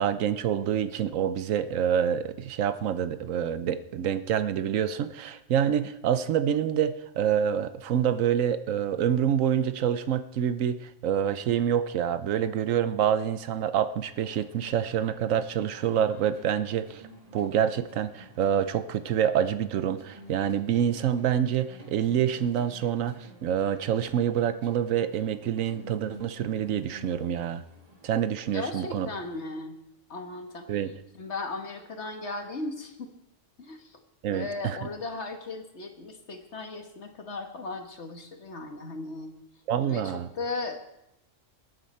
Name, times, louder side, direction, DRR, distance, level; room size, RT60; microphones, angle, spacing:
voice 1, 0.0-17.0 17.3-27.6 28.0-29.1 30.7-30.9 34.2-34.8 39.7-40.3, right 9 dB, 90° right, 12 dB, 1.1 m, -27 dB
sound 1, 14.0-29.4, equal, 30° right, 2.3 m, -51 dB
voice 2, 28.5-29.8 30.1-30.7 31.2-33.1 33.6-34.0 34.3-39.3 39.8-40.8, left 3 dB, 60° left, 5 dB, 1.7 m, -36 dB
21.0 x 9.2 x 4.3 m, 0.84 s
omnidirectional pair, 1.3 m